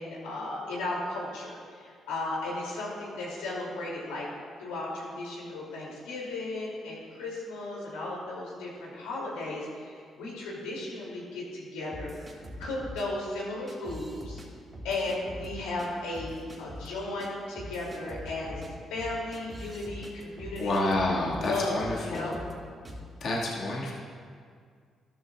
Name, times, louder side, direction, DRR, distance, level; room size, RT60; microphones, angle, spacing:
voice 1, 0.0-4.3 4.6-12.1 12.6-14.4 14.8-18.6 18.9-20.9 21.4-22.4, left 2 dB, 90° left, -4 dB, 2.9 m, -35 dB
sound 1, 11.9-13.0 13.7-14.5 14.7-15.9 16.1-16.9 17.2-17.3 17.5-21.5 21.8-22.5 22.8-23.1, equal, 30° right, 2.8 m, -43 dB
voice 2, 20.6-22.4 23.2-23.9, left 1 dB, 65° left, -5 dB, 2.0 m, -29 dB
13.0 x 13.0 x 2.5 m, 2.1 s
supercardioid pair, 55°, 0 cm